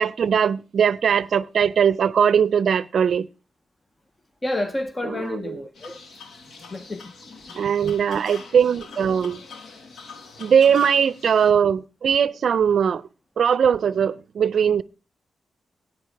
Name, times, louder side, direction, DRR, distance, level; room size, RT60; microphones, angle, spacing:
voice 1, 0.0-3.3 5.2-5.4 7.5-9.4 10.4-13.0 13.4-14.8, right 7 dB, 65° right, 0.5 m, -20 dB
voice 2, 4.4-6.0 6.6-7.1 7.5-7.9, left 1 dB, 20° left, 0.6 m, -30 dB
sound 1, 5.7-11.5, left 4 dB, 80° left, 1.8 m, -43 dB
17.5 x 9.2 x 3.4 m
wide cardioid pair, 135°, 0 cm